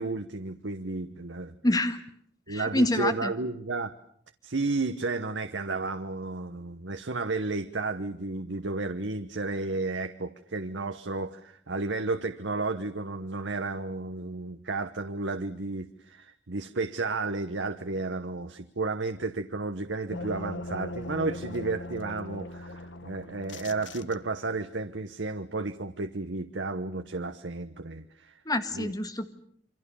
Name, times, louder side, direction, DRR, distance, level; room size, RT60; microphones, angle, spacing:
voice 1, 0.0-1.5 2.5-3.9 4.4-28.4 28.7-28.9, right 3 dB, 85° right, 8 dB, 1.1 m, -32 dB
voice 2, 1.6-2.0 2.5-3.3 28.5-29.3, left 1 dB, 20° left, 9 dB, 1.9 m, -26 dB
sound 1, 20.1-24.6, left 2 dB, 85° left, 1.3 m, -40 dB
28.0 x 24.5 x 7.0 m, 0.64 s
head